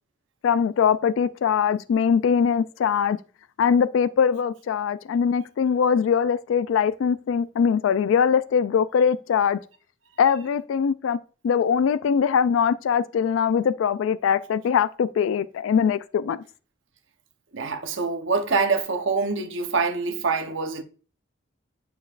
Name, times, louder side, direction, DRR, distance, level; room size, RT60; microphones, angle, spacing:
voice 1, 0.4-3.2 3.6-9.6 10.2-11.2 11.4-16.4, left 7 dB, 80° left, 0.3 m, -22 dB
voice 2, 17.5-20.8, right 4 dB, 70° right, 0.9 m, -25 dB
8.6 x 4.6 x 2.5 m
head